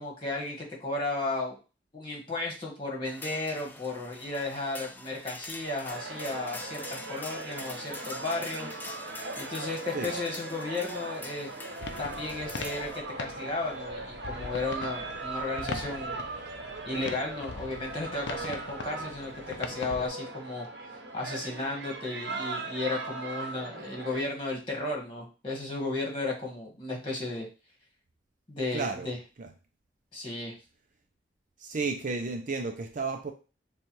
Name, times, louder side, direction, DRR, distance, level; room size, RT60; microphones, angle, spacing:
voice 1, 0.0-1.5 1.9-8.7 9.4-11.5 12.0-16.2 16.8-20.7 21.1-27.5 28.5-29.2 30.1-30.5, left 2 dB, 30° left, -1 dB, 1.7 m, -34 dB
sound 1, 3.0-13.0, left 2 dB, 10° left, 0.5 m, -44 dB
sound 2, 5.9-24.2, right 3 dB, 80° right, 0.8 m, -39 dB
sound 3, 11.8-20.1, left 4 dB, 80° left, 0.5 m, -42 dB
voice 2, 28.7-29.1 29.4-29.5 31.6-33.3, right 4 dB, 45° right, 5 dB, 0.5 m, -32 dB
6.8 x 2.4 x 3.1 m, 0.33 s
head